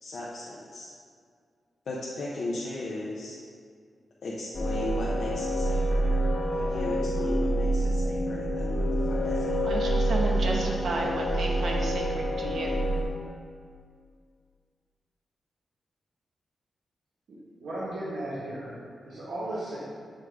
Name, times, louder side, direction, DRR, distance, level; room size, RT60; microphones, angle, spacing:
voice 1, 0.0-0.9 1.9-3.4 4.2-6.1 6.6-9.6, left 2 dB, 60° left, -5 dB, 0.7 m, -37 dB
sound 1, 4.5-13.0, right 1 dB, 25° left, 0.7 m, -27 dB
voice 2, 9.6-12.8, right 2 dB, 60° right, -1 dB, 0.9 m, -32 dB
voice 3, 17.3-18.7 19.0-19.8, right 1 dB, 75° right, -10 dB, 1.5 m, -35 dB
6.4 x 3.8 x 4.6 m, 2.2 s
wide cardioid pair, 175°, 0 cm